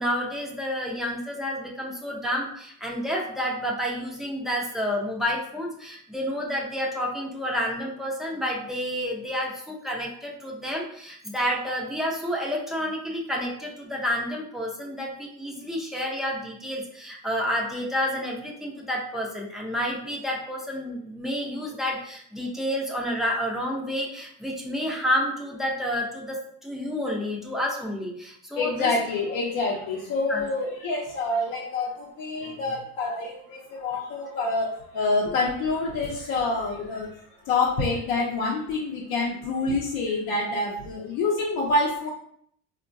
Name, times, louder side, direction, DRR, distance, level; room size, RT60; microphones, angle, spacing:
voice 1, 0.0-28.9 30.3-30.5, equal, ahead, -2 dB, 0.4 m, -29 dB
voice 2, 28.6-37.1 37.4-42.1, left 3 dB, 65° left, -4 dB, 0.7 m, -27 dB
3.6 x 2.2 x 2.5 m, 0.66 s
cardioid pair, 135°, 35 cm